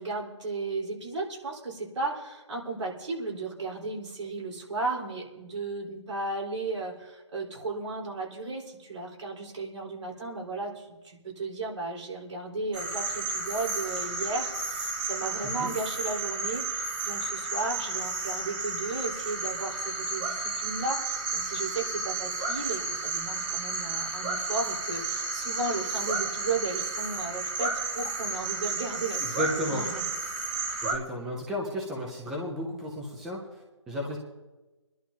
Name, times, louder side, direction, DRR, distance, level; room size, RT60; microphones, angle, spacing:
voice 1, 0.0-30.1, right 3 dB, 70° right, -2 dB, 4.4 m, -35 dB
sound 1, 12.7-30.9, right 3 dB, 15° right, 1.3 m, -32 dB
voice 2, 29.2-29.8 30.8-34.2, equal, ahead, -2 dB, 0.4 m, -33 dB
26.5 x 11.5 x 2.8 m, 1.2 s
hypercardioid pair, 165°, 16 cm